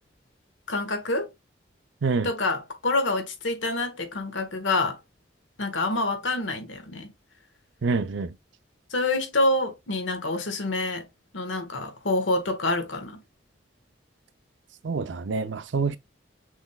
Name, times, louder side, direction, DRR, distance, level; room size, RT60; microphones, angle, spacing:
voice 1, 0.7-1.3 2.2-5.0 5.6-7.1 8.9-11.0 11.3-13.2, left 2 dB, 90° left, 1.3 m, -27 dB
voice 2, 2.0-2.3 7.8-8.4 14.8-16.0, right 4 dB, 75° right, 0.5 m, -26 dB
6.1 x 3.4 x 2.3 m
head